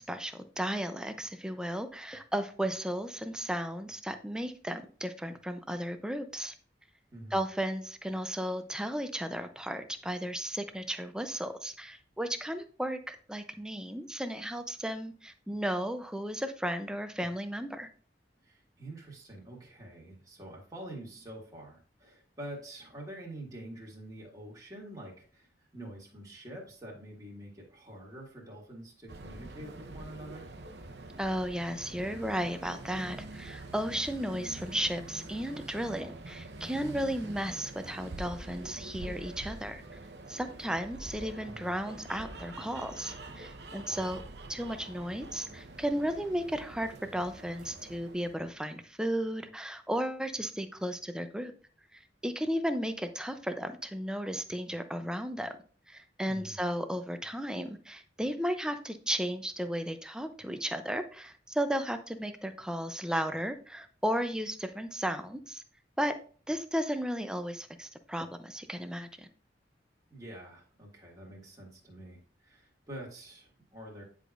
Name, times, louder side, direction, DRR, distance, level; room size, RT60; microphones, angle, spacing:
voice 1, 0.0-6.5 7.3-17.9 31.2-39.8 40.3-44.2 44.5-51.5 51.9-55.5 55.9-65.6 66.0-66.2 66.5-69.3, equal, 5° right, 8 dB, 0.6 m, -34 dB
voice 2, 18.4-30.5 41.5-41.7 43.9-44.1 56.3-56.6 70.1-74.0, right 1 dB, 20° right, -4 dB, 1.9 m, -46 dB
sound 1, 29.1-48.6, right 2 dB, 70° right, 0.9 m, -45 dB
9.8 x 5.0 x 2.5 m, 0.42 s
head